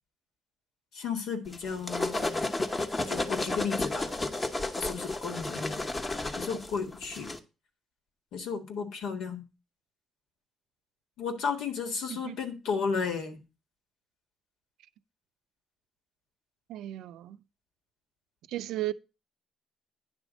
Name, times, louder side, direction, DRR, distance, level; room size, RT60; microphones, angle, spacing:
voice 1, 0.9-2.4 3.0-4.1 4.8-5.8 6.4-7.3 8.3-9.4 11.2-13.4, left 5 dB, 85° left, 1.7 m, -33 dB
sound 1, 1.5-7.4, left 2 dB, 25° left, 1.0 m, -32 dB
voice 2, 16.7-17.4 18.5-18.9, right 15 dB, 85° right, 0.4 m, -35 dB
9.7 x 3.5 x 6.2 m
cardioid pair, 90°, 0 cm